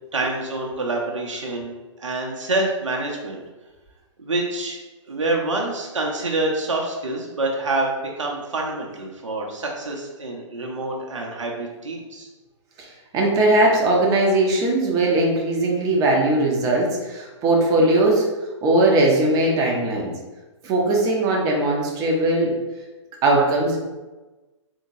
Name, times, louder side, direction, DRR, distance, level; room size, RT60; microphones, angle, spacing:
voice 1, 0.1-3.4 4.2-4.8 5.1-12.3, right 2 dB, 75° right, -1 dB, 0.7 m, -27 dB
voice 2, 12.8-18.3 18.6-20.1 20.6-22.5 23.2-23.8, right 2 dB, 20° right, -1 dB, 0.8 m, -19 dB
3.8 x 2.9 x 2.7 m, 1.2 s
figure-of-eight pair, 120°, 16 cm